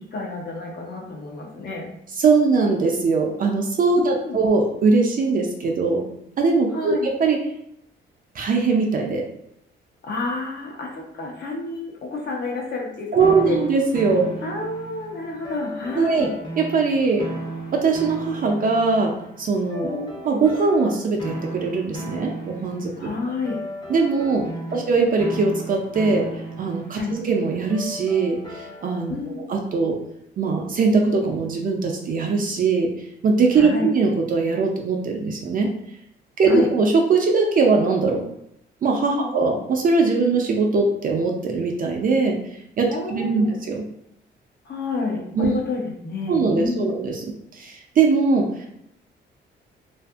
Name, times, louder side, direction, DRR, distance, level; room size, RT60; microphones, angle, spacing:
voice 1, 0.0-1.9 4.0-4.4 6.7-7.1 10.0-13.6 14.4-16.3 19.8-20.2 23.0-23.6 24.3-24.8 27.0-27.1 29.1-29.4 33.6-33.9 36.4-36.7 39.1-39.3 42.9-43.6 44.6-46.9, left 3 dB, 55° left, -1 dB, 0.8 m, -30 dB
voice 2, 2.2-6.0 6.4-7.4 8.3-9.2 13.1-14.3 15.9-16.3 16.6-17.3 17.7-19.1 19.4-23.1 23.9-26.3 26.6-30.0 30.4-32.9 33.2-35.7 36.4-38.2 38.8-42.4 42.8-43.8 45.4-45.5 46.3-47.3 47.5-48.7, right 4 dB, 45° right, 1 dB, 0.4 m, -21 dB
sound 1, 13.2-29.1, right 1 dB, 20° left, 0.7 m, -36 dB
2.6 x 2.5 x 2.3 m, 0.75 s
cardioid pair, 90°, 20 cm